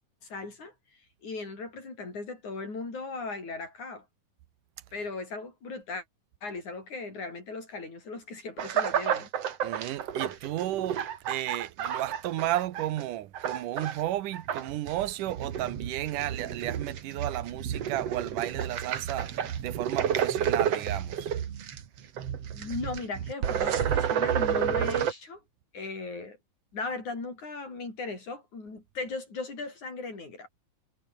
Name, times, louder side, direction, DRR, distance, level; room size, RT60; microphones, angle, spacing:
voice 1, 0.2-4.1 4.9-6.0 6.4-9.3 22.5-25.4 25.7-26.4 26.7-30.5, left 3 dB, 65° left, 9.4 m, -37 dB
sound 1, 8.6-13.0 13.3-14.0 14.3-25.1, right 9 dB, 55° right, 2.6 m, -30 dB
voice 2, 9.6-19.3 19.6-21.3, right 14 dB, 80° right, 2.7 m, -33 dB
omnidirectional pair, 3.7 m